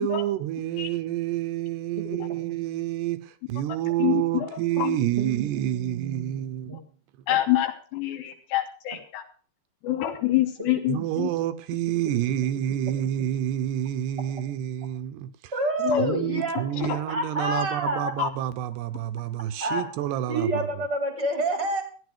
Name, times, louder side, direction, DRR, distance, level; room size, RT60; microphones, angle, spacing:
voice 1, 0.0-6.7 10.9-15.5 16.0-20.6, right 12 dB, 75° right, 2.8 m, -28 dB
voice 2, 4.0-4.5 4.8-5.0 7.3-9.2 9.8-11.3 15.8-16.1 16.8-17.0 18.2-18.3, left 14 dB, 80° left, 3.2 m, -26 dB
voice 3, 5.2-6.8 7.3-7.4 8.9-9.0 10.6-10.7 11.0-11.1 12.0-12.1 15.5-16.6 16.9-18.1 19.6-19.8 20.3-21.8, right 1 dB, 25° right, 1.3 m, -29 dB
14.5 x 10.0 x 5.0 m
omnidirectional pair, 5.0 m